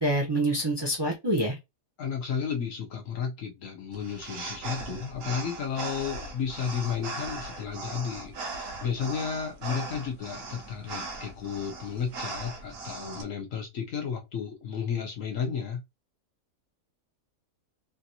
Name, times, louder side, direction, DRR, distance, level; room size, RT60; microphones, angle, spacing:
voice 1, 0.0-1.5, right 1 dB, 25° right, 0.7 m, -26 dB
voice 2, 2.0-15.8, left 7 dB, 65° left, 1.1 m, -33 dB
sound 1, 3.9-13.2, right 3 dB, 65° right, 1.1 m, -39 dB
3.3 x 2.5 x 2.7 m
omnidirectional pair, 1.5 m